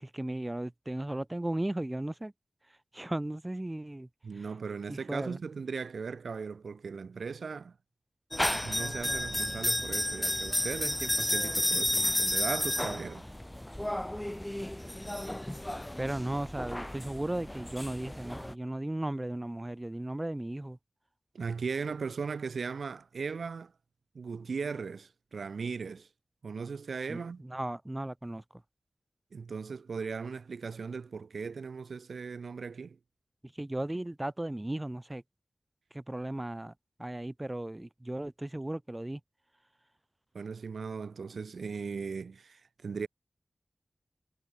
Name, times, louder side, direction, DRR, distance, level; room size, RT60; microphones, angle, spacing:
voice 1, 0.0-2.3 2.9-4.5 4.9-5.4 16.0-20.8 27.1-28.6 33.4-35.2 35.9-36.7 37.0-39.2, right 1 dB, 20° right, 2.3 m, -36 dB
voice 2, 4.2-7.8 8.6-13.3 21.3-23.7 24.2-26.1 26.4-27.4 29.3-33.0 40.3-43.1, right 5 dB, 90° right, 3.4 m, -38 dB
sound 1, 8.3-18.5, left 1 dB, 10° left, 2.5 m, -32 dB
cardioid pair, 50°, 0 cm